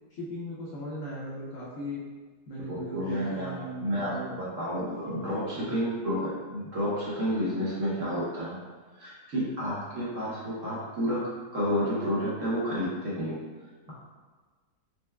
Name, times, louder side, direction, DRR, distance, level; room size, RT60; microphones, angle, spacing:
voice 1, 0.1-2.0 2.5-4.3 5.0-5.3 5.6-5.9 13.9-14.0, equal, 60° left, -7 dB, 0.9 m, -38 dB
voice 2, 2.7-3.5 3.8-8.6 9.0-13.4, equal, 55° right, -8 dB, 1.1 m, -30 dB
4.4 x 3.3 x 2.2 m, 1.4 s
omnidirectional pair, 1.9 m